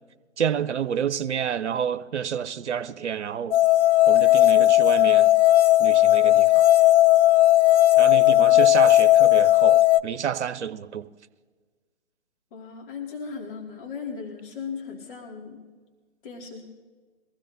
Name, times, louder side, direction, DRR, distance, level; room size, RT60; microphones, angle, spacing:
voice 1, 0.4-3.6 4.1-5.3 5.8-6.7 8.0-11.1, right 8 dB, 80° right, 0.7 m, -29 dB
sound 1, 3.5-10.0, left 15 dB, 75° left, 0.6 m, -16 dB
voice 2, 12.5-15.6 16.2-16.7, left 5 dB, 50° left, 2.2 m, -37 dB
22.5 x 15.5 x 2.6 m
hypercardioid pair, 135°, 34 cm